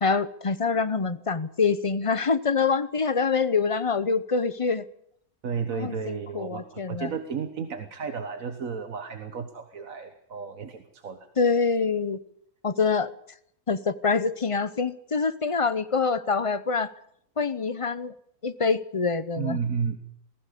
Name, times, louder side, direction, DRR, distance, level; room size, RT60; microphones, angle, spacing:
voice 1, 0.0-4.8 5.7-7.1 11.4-12.2 12.6-13.1 13.7-16.9 17.4-18.1 18.4-19.6, left 4 dB, 30° left, 14 dB, 0.6 m, -25 dB
voice 2, 5.4-11.3 19.4-20.0, right 6 dB, 60° right, 7 dB, 1.6 m, -33 dB
20.0 x 15.5 x 8.4 m, 0.71 s
omnidirectional pair, 1.6 m